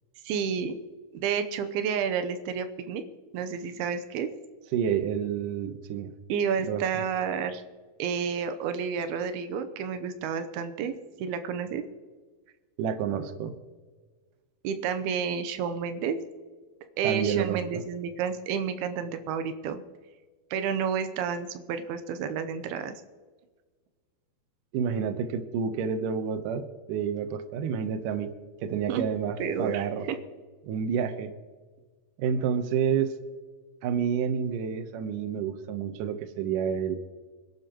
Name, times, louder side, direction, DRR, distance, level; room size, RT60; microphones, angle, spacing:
voice 1, 0.2-0.7 1.1-3.0 3.3-4.3 6.3-7.6 8.0-11.8 14.6-16.2 17.0-19.8 20.5-23.0 28.9-29.1 29.4-30.2, right 7 dB, 90° right, 9 dB, 2.8 m, -30 dB
voice 2, 4.7-6.1 6.6-7.0 12.8-13.5 17.0-17.8 24.7-28.3 28.6-30.1 30.6-31.3 32.2-33.2 33.8-37.0, right 7 dB, 70° right, 8 dB, 2.3 m, -29 dB
25.5 x 12.0 x 3.0 m, 1.4 s
omnidirectional pair, 4.4 m